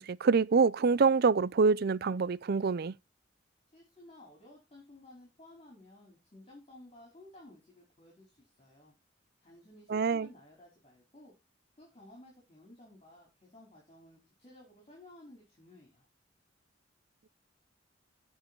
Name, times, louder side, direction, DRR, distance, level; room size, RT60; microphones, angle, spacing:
voice 1, 0.0-2.9 9.9-10.3, right 5 dB, 55° right, 0.5 m, -26 dB
voice 2, 3.7-8.9 9.4-11.3 11.8-16.1, left 1 dB, 30° left, 4.8 m, -55 dB
16.0 x 5.6 x 4.5 m
head